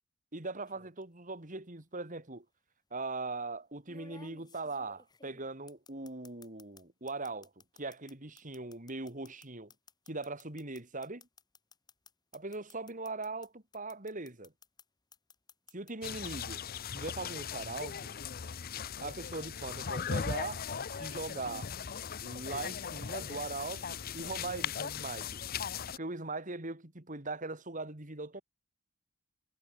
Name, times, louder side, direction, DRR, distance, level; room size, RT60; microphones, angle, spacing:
voice 1, 0.3-2.4 2.9-9.7 10.1-11.3 12.3-14.5 15.7-16.6 16.9-18.1 19.0-20.6 20.9-21.7 22.2-25.4 26.0-28.4, right 3 dB, 35° right, 2.9 m, -40 dB
sound 1, 0.7-1.0 2.2-2.3 3.9-6.8 7.1-13.5 13.7-14.8 15.1-16.3, left 4 dB, 20° left, 1.9 m, -57 dB
sound 2, 16.0-26.0, left 7 dB, 45° left, 0.6 m, -38 dB
head